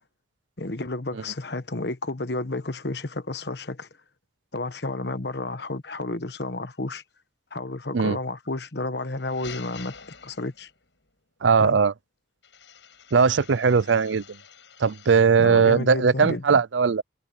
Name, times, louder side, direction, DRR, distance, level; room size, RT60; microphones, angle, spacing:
voice 1, 0.6-3.9 4.5-7.0 7.5-9.9 10.2-10.7 11.6-11.8 15.4-16.6, left 2 dB, 65° left, 1.2 m, -31 dB
sound 1, 8.9-10.9 12.4-15.4, left 6 dB, 80° left, 6.7 m, -46 dB
voice 2, 11.4-11.9 13.1-14.2 14.8-17.0, right 5 dB, 85° right, 0.6 m, -19 dB
head